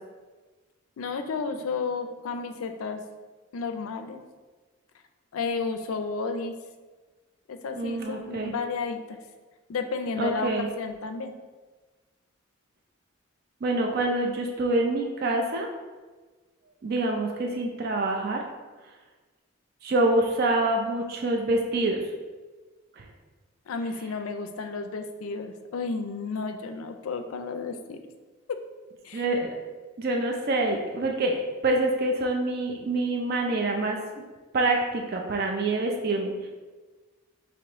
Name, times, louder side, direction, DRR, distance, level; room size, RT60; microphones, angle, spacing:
voice 1, 1.0-3.0 3.5-4.2 5.3-6.5 7.5-9.2 9.7-11.3 23.7-28.0 28.5-28.6 29.0-29.3, left 4 dB, 80° left, 8 dB, 0.4 m, -32 dB
voice 2, 7.8-8.5 10.2-10.7 13.6-15.7 16.8-18.4 19.8-22.0 23.0-23.1 29.1-29.6 30.0-34.3 34.5-36.5, right 2 dB, 45° right, 2 dB, 0.4 m, -26 dB
3.0 x 2.9 x 4.6 m, 1.3 s
head